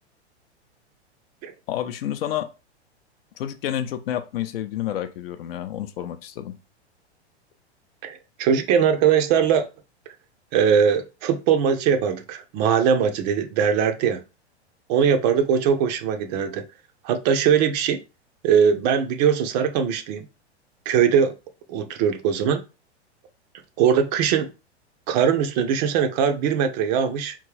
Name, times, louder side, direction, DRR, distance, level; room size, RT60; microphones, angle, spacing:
voice 1, 1.7-2.5 3.4-6.6, left 11 dB, 55° left, 0.6 m, -29 dB
voice 2, 8.0-9.7 10.5-14.2 14.9-16.6 17.0-18.0 18.4-20.3 20.9-21.3 21.7-22.6 23.8-24.5 25.1-27.4, right 7 dB, 40° right, 0.5 m, -21 dB
3.6 x 2.6 x 3.2 m
hypercardioid pair, 105°, 34 cm